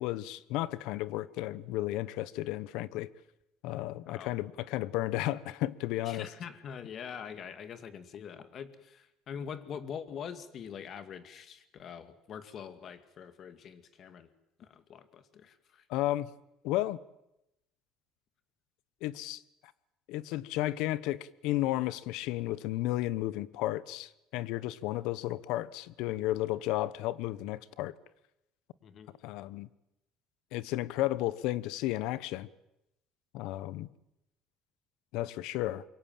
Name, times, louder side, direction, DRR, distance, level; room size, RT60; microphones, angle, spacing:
voice 1, 0.0-3.1 3.6-6.3 15.9-16.3 16.6-17.0 19.0-19.4 20.1-27.9 29.2-29.7 30.5-32.5 33.3-33.9 35.1-35.8, left 16 dB, 75° left, 1.0 m, -33 dB
voice 2, 6.0-14.3 14.6-15.8 28.8-29.1, left 7 dB, 45° left, 2.3 m, -44 dB
26.0 x 23.0 x 7.6 m
cardioid pair, 120°, 0 cm